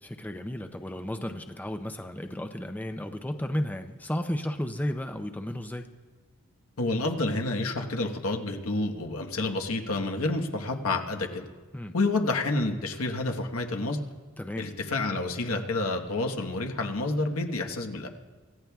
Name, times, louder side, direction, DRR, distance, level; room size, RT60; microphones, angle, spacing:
voice 1, 0.0-5.9 11.7-11.9 14.4-14.7, equal, 10° left, 6 dB, 0.5 m, -33 dB
voice 2, 6.8-11.5 11.9-14.0 14.6-18.1, left 2 dB, 85° left, 3 dB, 1.2 m, -29 dB
26.0 x 15.0 x 2.3 m, 1.4 s
head